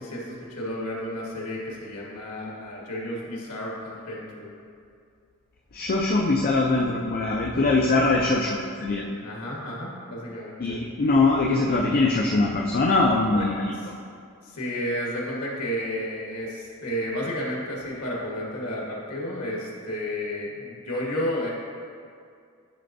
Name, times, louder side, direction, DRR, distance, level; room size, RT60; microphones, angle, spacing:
voice 1, 0.0-4.5 7.6-7.7 9.2-10.8 13.3-13.4 13.7-13.9 14.4-21.5, equal, 85° left, -3 dB, 1.4 m, -32 dB
voice 2, 5.7-9.0 10.6-13.7, left 3 dB, 40° left, -1 dB, 0.4 m, -22 dB
9.8 x 4.3 x 2.6 m, 2.3 s
head